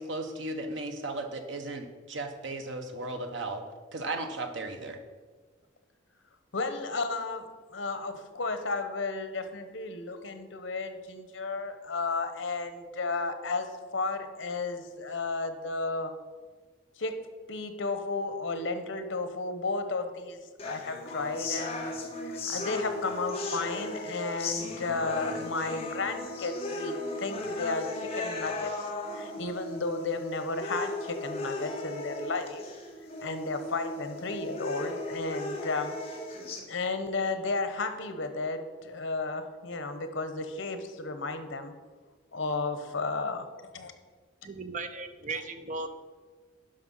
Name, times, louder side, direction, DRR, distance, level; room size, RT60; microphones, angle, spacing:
voice 1, 0.0-3.6 3.9-5.0, right 2 dB, 70° right, 5 dB, 1.1 m, -36 dB
voice 2, 6.5-7.5 7.7-16.1 17.0-21.9 22.2-32.6 33.2-36.0 36.7-41.7 42.3-43.5 43.7-43.9 45.3-45.4, left 3 dB, 85° left, 9 dB, 1.1 m, -33 dB
sound 1, 20.6-36.6, left 2 dB, 30° left, 1.4 m, -36 dB
voice 3, 44.4-45.9, right 3 dB, 40° right, 9 dB, 0.7 m, -36 dB
11.5 x 5.4 x 5.5 m, 1.4 s
head